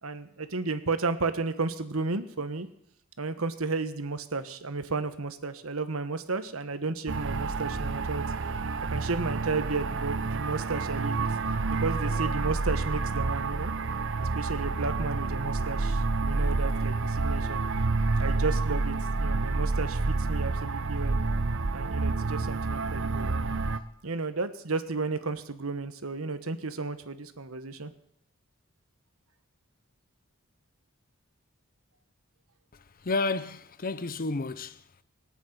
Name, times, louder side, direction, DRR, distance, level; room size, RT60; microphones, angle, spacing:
voice 1, 0.0-2.7 3.2-8.2 8.9-11.3 11.7-13.7 14.2-17.6 18.2-21.2 21.7-23.6 24.0-27.9, right 3 dB, 80° right, 1.3 m, -33 dB
sound 1, 7.1-23.8, right 3 dB, 60° right, 0.9 m, -29 dB
voice 2, 32.7-35.0, left 3 dB, 45° left, 0.8 m, -32 dB
18.5 x 8.4 x 9.2 m
head